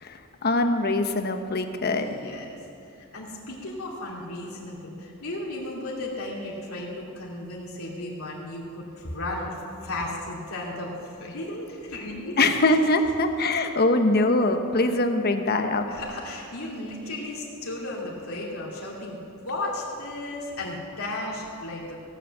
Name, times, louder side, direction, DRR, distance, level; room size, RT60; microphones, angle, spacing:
voice 1, 0.0-2.1 12.4-15.9, left 2 dB, 50° left, 7 dB, 1.0 m, -23 dB
voice 2, 1.8-2.6 3.1-12.4 15.9-19.2 19.4-22.0, left 1 dB, 80° left, -3 dB, 2.9 m, -35 dB
17.0 x 7.9 x 7.3 m, 2.5 s
head